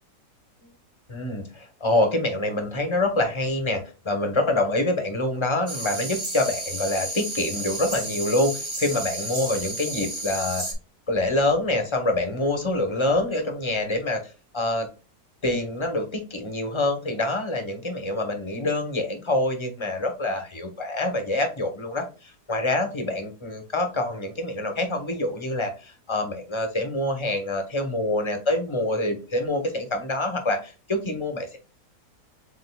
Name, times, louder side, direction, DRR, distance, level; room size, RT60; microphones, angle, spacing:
voice 1, 1.1-10.7 11.1-14.2 14.5-14.9 15.4-31.6, left 2 dB, 25° left, 5 dB, 0.7 m, -26 dB
sound 1, 5.7-10.7, right 1 dB, 25° right, 0.7 m, -32 dB
7.3 x 2.6 x 2.2 m, 0.33 s
omnidirectional pair, 1.8 m